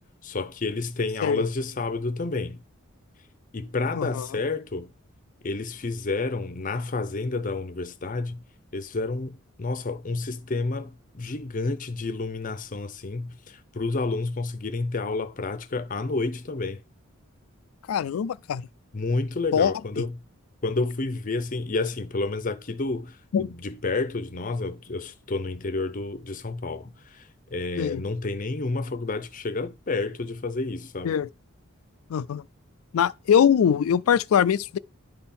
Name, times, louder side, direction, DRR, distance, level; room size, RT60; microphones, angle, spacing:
voice 1, 0.2-2.6 3.5-4.9 5.4-8.4 8.7-16.8 18.9-20.2 20.6-31.2, left 3 dB, 40° left, 0.6 m, -30 dB
voice 2, 4.0-4.3 17.9-18.7 19.5-20.0 23.3-23.5 27.8-28.0 31.0-31.3 32.1-32.4 32.9-34.8, left 8 dB, 90° left, 0.4 m, -22 dB
10.5 x 3.6 x 4.3 m
head